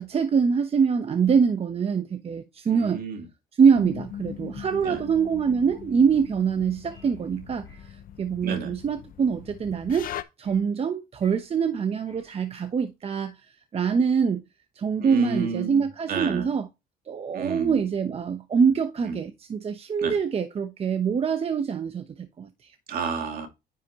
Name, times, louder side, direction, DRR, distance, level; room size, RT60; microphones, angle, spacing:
voice 1, 0.0-3.0 3.6-14.4 14.7-16.7 17.1-22.7, right 6 dB, 35° right, 1.0 m, -24 dB
voice 2, 2.7-3.3 4.8-5.0 8.4-8.7 15.0-16.5 17.3-17.9 19.1-19.2 20.0-20.2 22.9-23.5, right 5 dB, 60° right, 2.5 m, -31 dB
sound 1, 3.7-10.2, left 10 dB, 55° left, 0.8 m, -41 dB
sound 2, 6.9-7.3 7.6-8.0 10.4-10.7 11.2-11.5 12.1-12.4, left 1 dB, 15° left, 4.1 m, -54 dB
10.0 x 5.6 x 3.0 m
cardioid pair, 110°, 17 cm